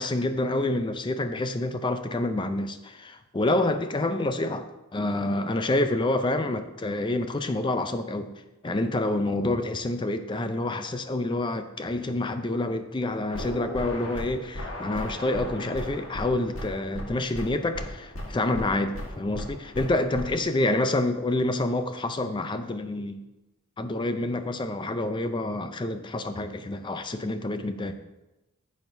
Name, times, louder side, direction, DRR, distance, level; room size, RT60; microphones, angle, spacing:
voice 1, 0.0-4.7 4.9-8.3 8.6-23.2 23.8-27.9, left 2 dB, 20° left, 9 dB, 0.4 m, -28 dB
sound 1, 13.3-20.4, equal, 60° left, 1.5 m, -37 dB
10.5 x 7.2 x 2.6 m, 1.0 s
head